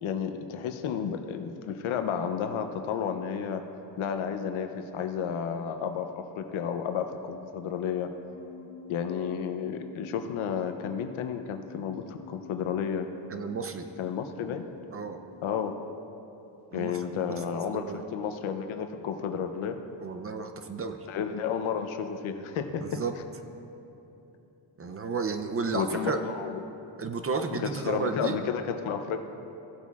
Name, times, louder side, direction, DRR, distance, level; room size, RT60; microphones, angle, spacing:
voice 1, 0.0-3.6 4.0-8.1 8.9-13.1 14.0-14.6 15.4-15.8 16.7-19.8 21.1-23.0 25.7-26.6 27.6-29.2, left 7 dB, 75° left, 7 dB, 0.7 m, -32 dB
sound 1, 8.3-15.7, left 4 dB, 55° left, 1.5 m, -49 dB
voice 2, 13.3-13.8 14.9-15.2 16.7-17.3 17.7-18.0 20.0-21.0 22.8-23.1 24.8-26.2 27.0-28.4, right 4 dB, 30° right, 7 dB, 0.5 m, -32 dB
16.5 x 8.2 x 2.4 m, 3.0 s
cardioid pair, 115°, 50 cm